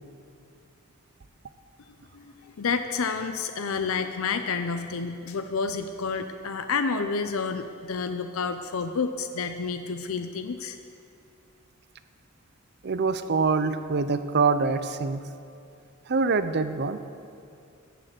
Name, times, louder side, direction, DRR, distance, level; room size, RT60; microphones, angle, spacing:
voice 1, 2.1-10.8, left 5 dB, 80° left, 8 dB, 0.6 m, -29 dB
voice 2, 12.8-15.2 16.1-17.0, right 4 dB, 55° right, 11 dB, 0.6 m, -24 dB
15.0 x 6.6 x 7.7 m, 2.5 s
head